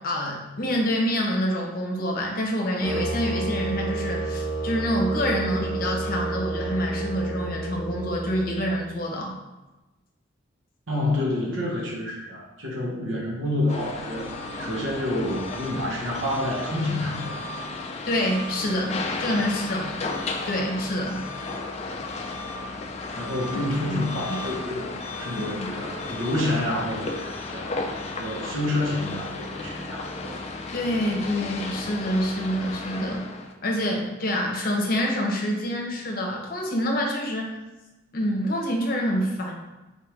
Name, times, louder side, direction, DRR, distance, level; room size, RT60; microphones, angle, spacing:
voice 1, 0.0-9.3 18.1-20.0 20.4-21.2 23.9-24.0 24.3-24.4 25.4-25.5 30.7-33.3 33.6-37.5 38.1-39.5, equal, 50° left, 0 dB, 0.8 m, -26 dB
sound 1, 2.8-8.9, right 2 dB, 10° right, 0.9 m, -30 dB
voice 2, 10.9-17.4 23.2-27.7 28.2-30.3, left 1 dB, 85° right, -2 dB, 1.2 m, -28 dB
sound 2, 13.7-33.5, left 3 dB, 35° left, 0.4 m, -34 dB
4.3 x 3.4 x 3.1 m, 1.1 s
head